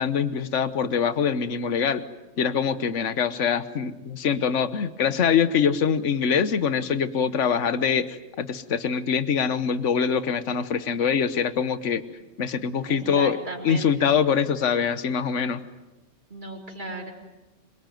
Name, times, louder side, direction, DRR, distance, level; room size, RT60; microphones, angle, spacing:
voice 1, 0.0-2.0 2.4-12.0 12.4-13.4 13.6-15.6, left 7 dB, 75° left, 13 dB, 1.4 m, -24 dB
voice 2, 12.9-14.1 16.3-17.1, right 2 dB, 40° right, 1 dB, 4.3 m, -36 dB
26.5 x 23.0 x 9.3 m, 1.0 s
omnidirectional pair, 1.3 m